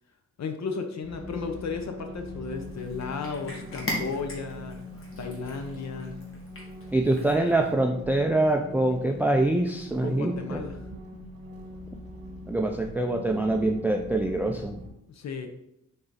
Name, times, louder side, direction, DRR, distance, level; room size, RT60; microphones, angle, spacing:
voice 1, 0.4-4.8 5.2-6.2 10.0-10.8 15.1-15.5, left 5 dB, 70° left, 6 dB, 0.8 m, -34 dB
sound 1, 1.0-14.9, left 1 dB, 55° right, 1.8 m, -42 dB
Cat, 2.5-7.8, left 1 dB, 50° left, 1.8 m, -40 dB
voice 2, 6.9-10.6 12.5-14.8, right 2 dB, 5° right, 4 dB, 0.3 m, -25 dB
7.1 x 3.9 x 4.0 m, 0.81 s
wide cardioid pair, 160°, 29 cm